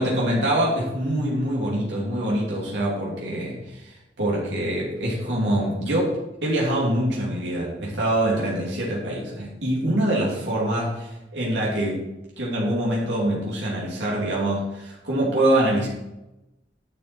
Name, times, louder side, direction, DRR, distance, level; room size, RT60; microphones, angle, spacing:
voice 1, 0.0-6.2 6.4-12.0 12.4-15.9, right 1 dB, 85° right, -5 dB, 2.9 m, -24 dB
10.5 x 7.0 x 4.5 m, 0.94 s
head